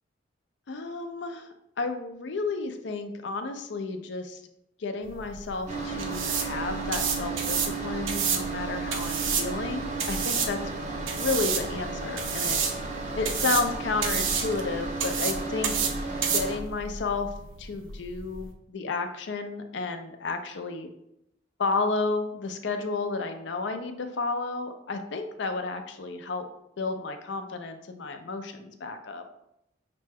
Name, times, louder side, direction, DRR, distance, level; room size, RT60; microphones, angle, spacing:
voice 1, 0.7-1.5 1.8-4.4 4.8-10.6 11.1-12.6 13.1-15.9 16.3-17.3 17.6-20.9 21.6-26.4 26.8-29.3, left 3 dB, 60° left, 7 dB, 0.5 m, -32 dB
sound 1, 5.0-18.5, right 6 dB, 75° right, 0.5 m, -31 dB
sound 2, 5.7-16.6, right 3 dB, 35° right, 0.6 m, -34 dB
5.8 x 2.2 x 3.4 m, 0.81 s
head